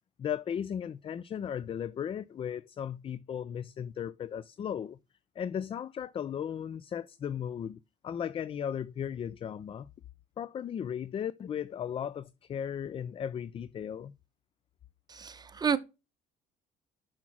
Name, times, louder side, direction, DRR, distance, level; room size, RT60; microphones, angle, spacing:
voice 1, 0.2-5.0 5.4-9.9 10.4-14.1, left 8 dB, 35° left, 0.4 m, -36 dB
voice 2, 15.1-15.8, right 6 dB, 25° right, 0.9 m, -30 dB
6.1 x 6.0 x 6.0 m
cardioid pair, 110°, 17 cm